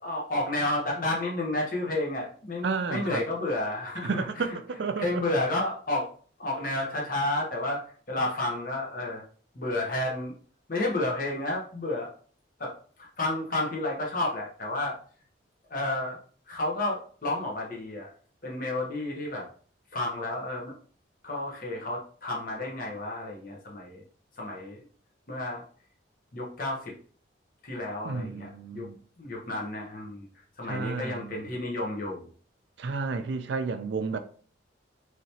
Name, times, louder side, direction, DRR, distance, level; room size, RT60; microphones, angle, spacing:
voice 1, 0.0-4.1 4.4-4.6 5.0-6.1 6.4-7.8 8.1-9.2 9.5-10.3 10.7-12.1 12.6-14.9 15.7-16.2 16.5-18.1 18.4-19.5 19.9-20.8 21.2-24.0 24.4-24.8 25.3-25.6 26.3-26.9 27.6-28.9 29.2-30.3 30.6-32.3, left 2 dB, 45° left, 0.9 m, -31 dB
voice 2, 2.6-3.2 4.0-5.2 28.0-29.0 30.6-31.5 32.8-34.2, right 4 dB, 65° right, 0.4 m, -32 dB
3.2 x 2.9 x 2.8 m
head